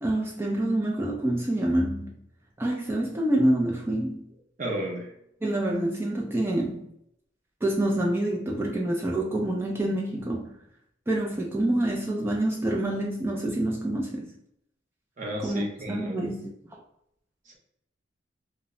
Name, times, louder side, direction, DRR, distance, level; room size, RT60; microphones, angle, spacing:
voice 1, 0.0-2.2 2.6-4.2 5.4-6.9 7.6-10.6 11.1-14.4 15.4-16.8, right 1 dB, 15° right, -1 dB, 0.3 m, -27 dB
voice 2, 4.6-5.1 15.2-16.3 17.5-17.6, equal, 40° right, -1 dB, 0.7 m, -33 dB
2.1 x 2.1 x 3.6 m, 0.75 s
head